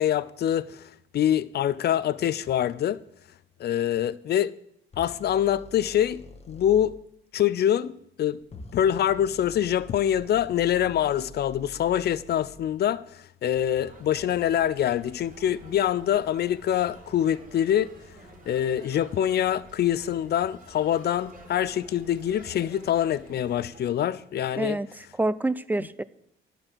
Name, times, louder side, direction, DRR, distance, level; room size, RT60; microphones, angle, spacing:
voice 1, 0.0-3.0 3.6-4.5 5.0-6.9 7.3-8.4 8.7-17.9 18.5-24.8, left 10 dB, 55° left, 0.5 m, -25 dB
sound 1, 4.9-6.9 8.4-12.8, left 2 dB, 30° left, 1.1 m, -46 dB
sound 2, 13.5-23.8, right 1 dB, 40° right, 2.6 m, -50 dB
voice 2, 24.6-26.0, right 2 dB, 10° right, 0.4 m, -27 dB
10.5 x 4.9 x 7.6 m
cardioid pair, 90°, 20 cm